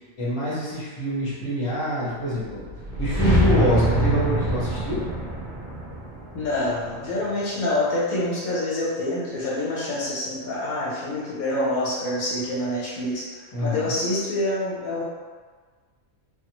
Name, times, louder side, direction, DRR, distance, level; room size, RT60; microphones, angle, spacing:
voice 1, 0.2-2.7 3.0-5.0 13.5-13.9, equal, 30° left, -8 dB, 0.7 m, -26 dB
sound 1, 2.5-7.6, right 1 dB, 35° right, 0.8 m, -25 dB
voice 2, 6.3-15.0, left 1 dB, 80° left, -7 dB, 1.4 m, -26 dB
3.1 x 2.1 x 2.9 m, 1.5 s
omnidirectional pair, 1.5 m